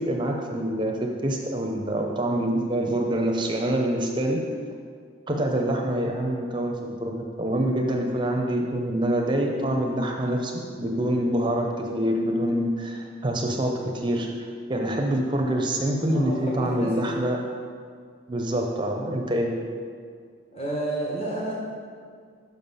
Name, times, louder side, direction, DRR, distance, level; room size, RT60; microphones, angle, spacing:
voice 1, 0.0-4.4 5.3-14.3 14.7-17.4 18.3-19.6, right 1 dB, 25° right, 1 dB, 0.6 m, -26 dB
voice 2, 16.1-17.0 20.5-21.5, right 1 dB, 30° left, -5 dB, 1.2 m, -30 dB
7.1 x 5.8 x 5.5 m, 2.1 s
head